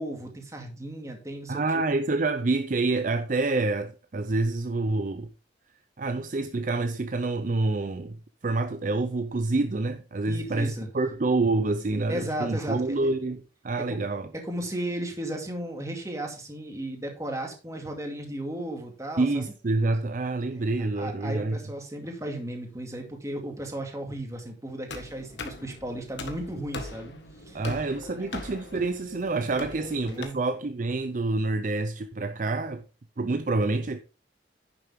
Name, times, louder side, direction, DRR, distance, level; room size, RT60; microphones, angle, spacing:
voice 1, 0.0-1.6 10.3-10.9 12.1-13.0 13.8-14.0 14.4-19.4 20.5-20.7 21.0-27.1 27.5-27.8 28.2-28.3 29.6-30.4, right 1 dB, 15° right, 2.2 m, -35 dB
voice 2, 1.5-5.3 6.0-8.2 8.4-14.3 19.2-21.6 27.5-32.8 33.2-34.0, right 3 dB, 45° right, 0.5 m, -27 dB
sound 1, 24.9-30.2, left 3 dB, 70° left, 1.6 m, -40 dB
10.5 x 6.9 x 3.6 m
head